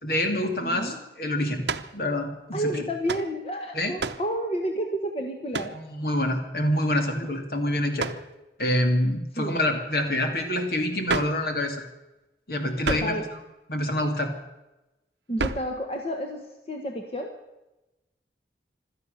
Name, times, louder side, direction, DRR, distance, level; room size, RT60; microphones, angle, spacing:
voice 1, 0.0-1.6 1.9-2.6 3.7-3.9 5.7-8.1 8.6-11.8 12.5-13.1 13.7-14.3, left 1 dB, 60° left, 5 dB, 2.7 m, -26 dB
voice 2, 0.6-1.0 2.5-5.8 9.4-9.6 12.9-13.3 15.3-17.4, equal, 35° left, 3 dB, 1.5 m, -30 dB
sound 1, 1.6-2.0 3.1-3.3 4.0-4.3 5.5-5.8 8.0-8.3 11.1-11.4 12.8-13.2 15.4-15.7, right 4 dB, 85° right, 0.9 m, -30 dB
16.5 x 13.0 x 6.8 m, 0.99 s
head